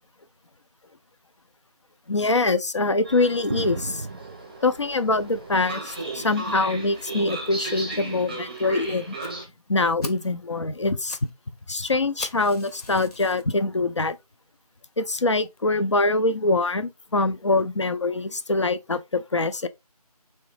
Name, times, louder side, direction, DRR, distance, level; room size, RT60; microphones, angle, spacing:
voice 1, 2.1-4.1 4.6-9.2 9.7-11.2 11.7-14.2 15.0-19.7, left 3 dB, 50° left, 0.4 m, -24 dB
Train, 3.0-9.4, right 2 dB, 15° right, 0.7 m, -36 dB
sound 1, 3.5-5.7 6.1-7.0 7.9-8.3 9.3-9.4, right 3 dB, 50° right, 0.4 m, -37 dB
Fire, 9.2-9.3 9.7-9.8 10.0-10.3 10.8-11.3 11.6-11.7 12.2-13.5 14.1-14.2 14.8-14.9 15.1-15.2 15.6-15.7, left 2 dB, 70° left, 1.0 m, -40 dB
3.6 x 3.1 x 3.1 m
figure-of-eight pair, 170°, 20 cm